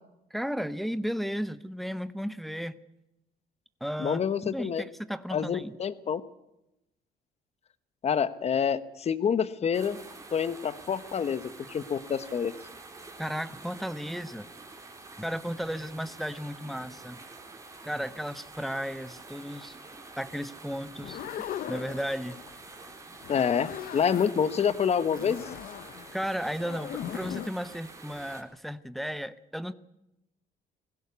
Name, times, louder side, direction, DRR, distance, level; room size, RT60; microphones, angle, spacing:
voice 1, 0.3-2.8 3.8-5.7 13.2-14.5 15.2-17.2 17.8-19.8 20.2-21.2 21.7-22.4 26.1-29.7, equal, ahead, 0.9 m, -34 dB
voice 2, 4.0-4.8 5.3-6.2 8.0-10.0 10.3-12.5 23.3-25.4, left 7 dB, 40° left, 1.2 m, -27 dB
sound 1, 9.7-28.4, right 3 dB, 20° right, 3.3 m, -47 dB
sound 2, 20.9-22.6 23.1-24.7 25.1-27.5, left 11 dB, 55° left, 0.8 m, -39 dB
20.5 x 16.5 x 8.3 m
cardioid pair, 110°, 17 cm